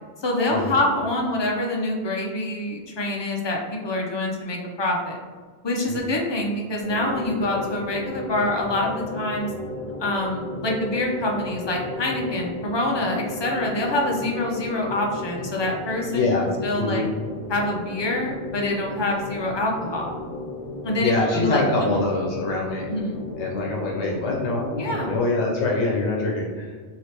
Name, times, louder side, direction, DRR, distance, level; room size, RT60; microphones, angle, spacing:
voice 1, 0.2-5.2 5.6-9.5 10.0-16.2 16.6-17.0 17.5-20.2 20.8-22.0 22.3-22.5 22.9-23.2 24.8-25.1, left 1 dB, 45° left, -1 dB, 0.3 m, -26 dB
sound 1, 6.8-25.2, left 1 dB, 40° right, 1.1 m, -34 dB
voice 2, 16.1-16.5 16.8-17.1 21.0-22.9 23.4-26.7, left 2 dB, 85° left, -2 dB, 0.9 m, -24 dB
3.2 x 2.8 x 2.8 m, 1.5 s
omnidirectional pair, 1.1 m